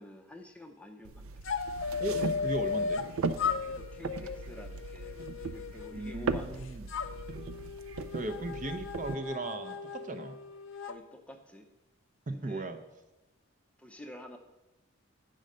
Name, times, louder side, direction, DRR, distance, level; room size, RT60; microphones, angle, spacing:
voice 1, 0.0-1.3 3.5-6.6 10.8-11.7 12.3-12.7 13.8-14.4, left 1 dB, 5° left, 4 dB, 0.5 m, -49 dB
sound 1, 1.0-9.1, right 3 dB, 85° right, 0.5 m, -38 dB
sound 2, 1.4-3.1 3.4-6.5 6.9-11.0, left 6 dB, 70° left, 0.5 m, -36 dB
voice 2, 2.0-3.1 5.9-6.9 8.1-10.4 12.3-12.8, right 2 dB, 40° right, 7 dB, 0.6 m, -37 dB
8.7 x 5.1 x 6.5 m, 1.0 s
head